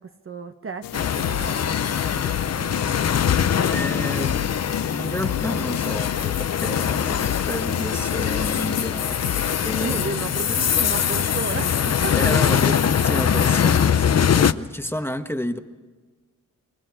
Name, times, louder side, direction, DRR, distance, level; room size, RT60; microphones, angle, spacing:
voice 1, 0.0-3.2 9.8-12.8, right 4 dB, 40° right, 7 dB, 1.0 m, -34 dB
sound 1, 0.8-10.1, left 13 dB, 85° left, 0.5 m, -32 dB
sound 2, 0.9-14.5, left 8 dB, 50° left, 0.7 m, -22 dB
voice 2, 3.6-4.4 4.8-10.0 10.5-10.6 12.2-15.6, left 1 dB, 5° left, 7 dB, 1.3 m, -31 dB
25.0 x 22.0 x 4.9 m, 1.4 s
cardioid pair, 80°, 34 cm